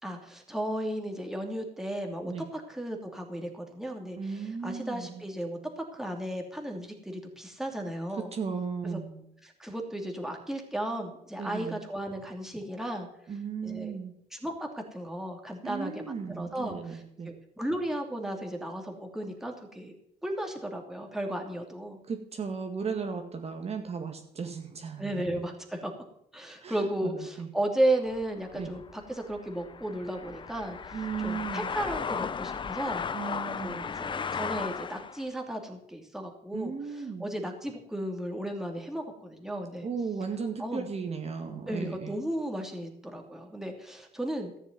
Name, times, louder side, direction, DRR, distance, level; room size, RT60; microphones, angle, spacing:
voice 1, 0.0-8.3 8.8-9.0 9.4-13.1 13.6-14.0 14.3-20.0 20.2-22.0 25.0-25.9 26.3-33.0 33.6-39.9 40.6-40.9 41.7-44.5, right 1 dB, ahead, 2 dB, 2.7 m, -34 dB
voice 2, 4.2-5.2 8.2-9.2 11.4-11.8 13.3-14.1 15.6-17.3 22.1-25.5 26.6-27.5 28.5-28.7 30.9-31.7 33.1-33.8 36.5-37.3 39.8-42.2, right 5 dB, 35° right, 4 dB, 2.0 m, -36 dB
sound 1, 28.1-35.2, left 6 dB, 30° left, 0.7 m, -36 dB
14.0 x 7.1 x 9.1 m, 0.75 s
cardioid pair, 110°, 17 cm